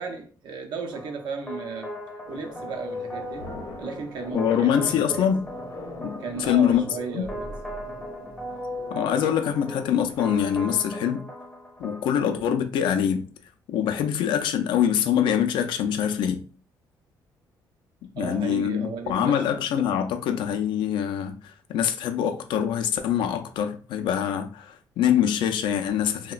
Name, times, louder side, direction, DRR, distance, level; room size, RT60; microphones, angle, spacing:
voice 1, 0.0-1.9 2.3-3.5 3.8-5.3 6.2-7.6 18.2-19.4, right 5 dB, 65° right, 0.5 m, -35 dB
sound 1, 0.9-12.5, equal, 10° left, 0.5 m, -38 dB
sound 2, 2.2-10.8, left 2 dB, 50° left, 0.7 m, -42 dB
voice 2, 4.3-5.5 6.0-6.9 7.1-7.3 8.9-11.2 11.8-13.3 13.7-16.4 18.2-21.3 21.7-26.3, left 9 dB, 80° left, 0.4 m, -24 dB
2.9 x 2.1 x 2.3 m
cardioid pair, 115°, 8 cm